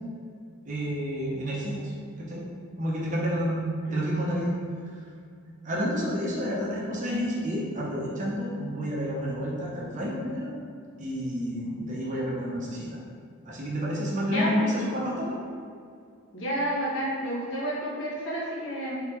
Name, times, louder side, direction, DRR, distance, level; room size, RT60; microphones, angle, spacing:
voice 1, 0.6-1.8 2.2-2.4 2.8-4.5 5.6-10.5 11.0-12.9 13.5-15.4, equal, 35° right, -4 dB, 0.7 m, -29 dB
voice 2, 14.2-14.7 16.3-19.0, equal, 65° left, -6 dB, 1.0 m, -30 dB
3.5 x 3.5 x 3.2 m, 2.3 s
head